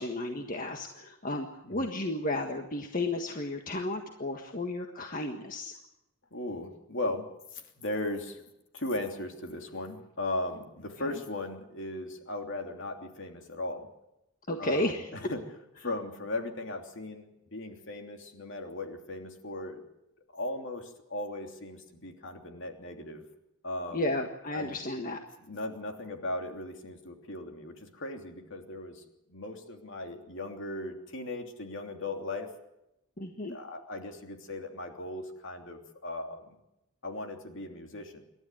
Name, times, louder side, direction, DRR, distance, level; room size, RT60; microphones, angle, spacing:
voice 1, 0.0-5.8 14.5-15.3 23.9-25.2 33.2-33.6, left 1 dB, 40° left, 3 dB, 1.6 m, -33 dB
voice 2, 6.3-7.3 7.5-13.9 14.6-15.4 15.8-19.8 20.3-23.2 23.6-24.1 24.5-24.8 25.4-29.0 29.3-32.5 33.3-36.6 37.0-38.2, left 2 dB, 55° left, 4 dB, 3.1 m, -37 dB
27.5 x 13.0 x 9.2 m, 0.88 s
head